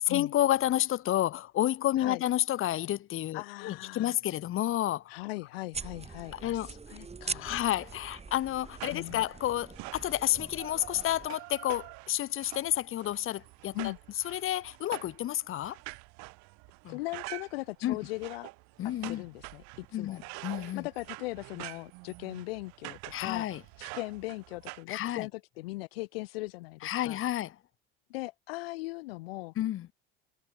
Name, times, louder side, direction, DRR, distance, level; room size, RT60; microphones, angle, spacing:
voice 1, 0.0-5.1 6.3-6.7 7.4-13.9 14.2-15.8 16.8-17.0 17.8-18.0 18.8-19.2 19.9-20.9 23.1-23.6 24.9-25.3 26.8-27.5 29.6-29.9, left 13 dB, 45° left, 1.2 m, -30 dB
voice 2, 3.3-4.2 5.1-7.6 8.9-9.2 13.7-14.0 16.9-18.5 19.1-19.6 19.9-20.2 20.7-23.5 23.8-27.2 28.1-29.5, left 22 dB, 80° left, 0.7 m, -39 dB
sound 1, 5.7-11.3, right 4 dB, 20° right, 3.8 m, -43 dB
sound 2, 7.8-24.8, right 27 dB, 70° right, 5.6 m, -47 dB
hypercardioid pair, 80°, 29 cm